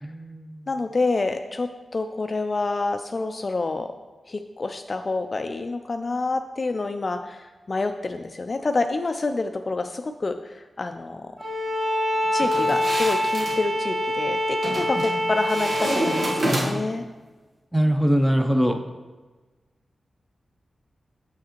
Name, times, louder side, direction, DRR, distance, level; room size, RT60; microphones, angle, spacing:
voice 1, 0.0-0.7 15.0-15.1 17.7-18.8, equal, ahead, 5 dB, 0.6 m, -22 dB
voice 2, 0.7-3.9 4.3-11.3 12.3-17.1, left 3 dB, 40° left, 7 dB, 0.3 m, -28 dB
Bowed string instrument, 11.4-16.4, left 1 dB, 25° right, 1.1 m, -25 dB
sound 1, 12.4-13.6 14.6-15.1 15.5-17.0, right 1 dB, 65° right, 1.2 m, -27 dB
7.3 x 6.4 x 3.0 m, 1.3 s
wide cardioid pair, 110°, 0 cm